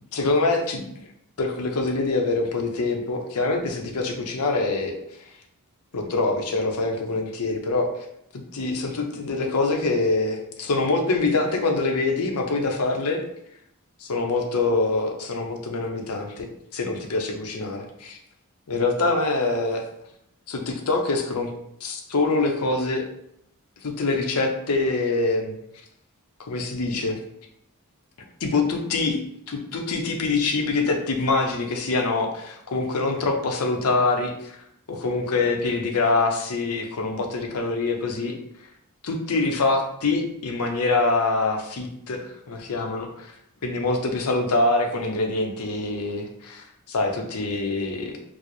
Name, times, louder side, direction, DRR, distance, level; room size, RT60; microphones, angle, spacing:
voice 1, 0.1-0.8 1.4-5.3 5.9-7.9 8.3-13.2 14.0-18.2 18.7-19.8 20.5-21.5 21.8-23.1 23.8-25.6 26.4-27.2 28.4-29.2 29.5-38.4 39.0-43.4 43.6-48.2, left 3 dB, 85° left, 4 dB, 0.6 m, -25 dB
4.6 x 2.0 x 3.0 m, 0.75 s
head